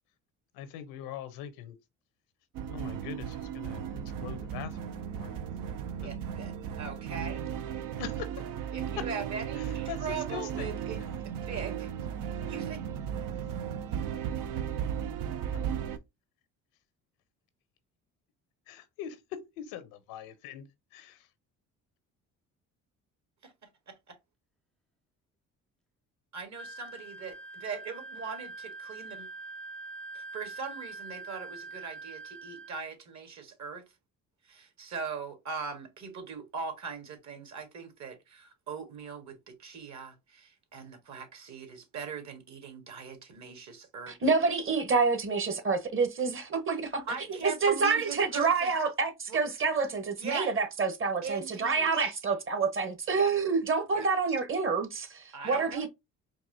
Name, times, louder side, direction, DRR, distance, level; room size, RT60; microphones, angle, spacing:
voice 1, 0.5-1.7 2.6-5.4 6.0-6.1 8.0-8.4 9.0-9.1 9.6-10.7 15.5-15.7 18.7-20.7 20.9-21.3, left 9 dB, 90° left, 0.8 m, -42 dB
sound 1, 2.5-16.0, right 8 dB, 70° right, 0.6 m, -35 dB
voice 2, 6.0-7.4 8.7-11.0 11.2-11.9 12.5-12.8 23.4-23.5 23.9-24.1 26.3-29.3 30.1-33.8 34.4-44.2 47.1-48.7 49.3-49.4 50.2-50.5 51.2-52.0 53.1-53.3 53.9-54.1 55.3-55.9, right 5 dB, 50° right, 1.6 m, -40 dB
Wind instrument woodwind instrument, 26.6-32.8, right 3 dB, ahead, 0.5 m, -44 dB
voice 3, 44.1-47.0 47.4-55.9, right 4 dB, 35° right, 1.1 m, -28 dB
4.6 x 2.9 x 2.7 m
supercardioid pair, 80°, 35 cm